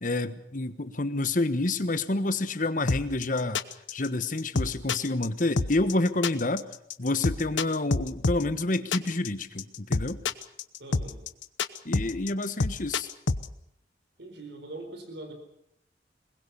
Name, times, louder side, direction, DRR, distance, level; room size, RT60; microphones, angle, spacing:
voice 1, 0.0-3.6 3.9-6.7 7.0-10.2 11.8-13.1, left 2 dB, 45° left, 12 dB, 1.2 m, -28 dB
sound 1, 2.9-13.5, left 3 dB, 90° left, 1.0 m, -28 dB
voice 2, 10.8-11.2 14.2-15.3, right 2 dB, 65° right, 6 dB, 4.3 m, -42 dB
22.5 x 20.5 x 7.0 m, 0.70 s
head